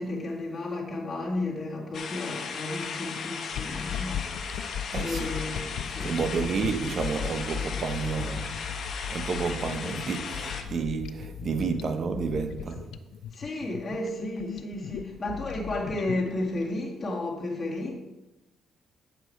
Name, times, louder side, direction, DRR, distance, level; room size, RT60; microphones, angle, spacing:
voice 1, 0.0-4.6 5.0-6.5 13.3-17.9, left 2 dB, 25° left, 2.1 m, -33 dB
sound 1, 1.9-10.6, left 5 dB, 60° left, 1.1 m, -36 dB
sound 2, 3.5-16.6, left 8 dB, 80° left, 0.4 m, -37 dB
voice 2, 4.9-5.3 6.0-8.6 9.1-12.9, right 5 dB, 50° right, 1.0 m, -30 dB
9.3 x 6.8 x 4.6 m
cardioid pair, 90°, 0 cm